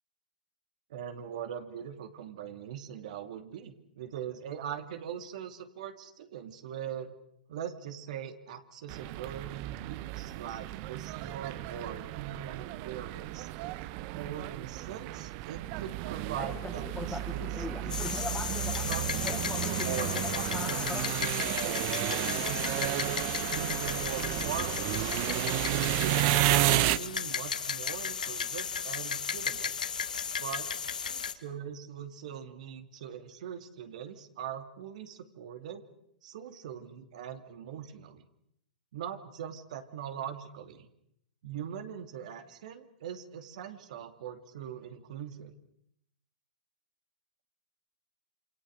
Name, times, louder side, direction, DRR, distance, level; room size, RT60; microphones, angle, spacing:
voice 1, 0.9-7.1 7.5-13.5 14.2-18.2 18.8-23.1 23.5-25.1 25.6-29.8 30.4-30.7 31.1-35.8 36.2-38.3 38.9-40.9 41.4-45.5, right 9 dB, 60° right, 7 dB, 2.7 m, -41 dB
sound 1, 8.9-27.0, right 18 dB, 45° right, 0.9 m, -32 dB
sound 2, 16.1-21.2, left 4 dB, 10° left, 1.1 m, -41 dB
sound 3, 17.9-31.3, left 7 dB, 85° left, 2.0 m, -34 dB
27.5 x 26.5 x 6.7 m, 0.75 s
hypercardioid pair, 115°, 4 cm